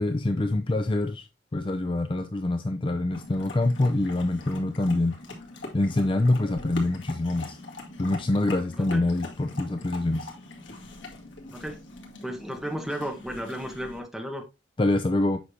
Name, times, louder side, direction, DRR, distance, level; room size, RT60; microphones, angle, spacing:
voice 1, 0.0-5.2 5.7-7.6 8.0-10.3 14.8-15.4, left 2 dB, 25° left, 0.5 m, -25 dB
sound 1, 3.1-14.0, left 2 dB, 85° left, 2.1 m, -42 dB
voice 2, 12.2-14.4, equal, ahead, 1.4 m, -34 dB
8.2 x 5.8 x 2.8 m
head